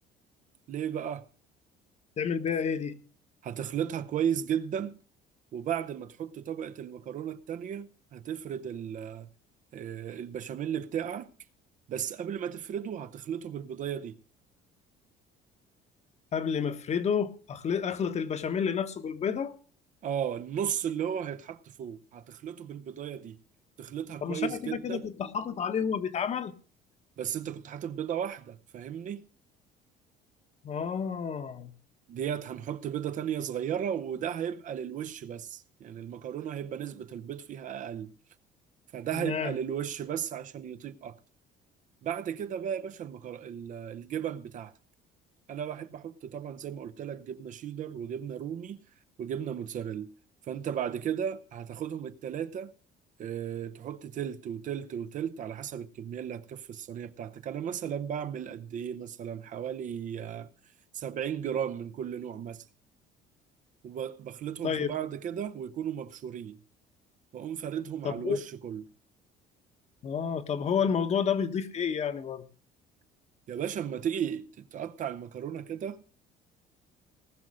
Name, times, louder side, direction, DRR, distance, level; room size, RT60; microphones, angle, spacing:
voice 1, 0.7-1.3 3.4-4.9 5.5-9.3 9.7-11.3 11.9-14.2 20.0-23.4 23.8-25.1 27.2-29.2 32.1-38.1 38.9-41.2 42.0-44.7 45.5-48.8 49.2-50.1 50.5-52.7 53.2-60.5 60.9-62.6 63.8-66.6 67.3-68.8 73.5-76.0, right 9 dB, 50° right, 0.7 m, -35 dB
voice 2, 2.2-2.9 16.3-19.5 24.2-26.5 30.6-31.7 39.1-39.5 64.6-64.9 68.0-68.4 70.0-72.4, left 7 dB, 40° left, 1.1 m, -30 dB
18.5 x 6.4 x 6.2 m
cardioid pair, 120°, 17 cm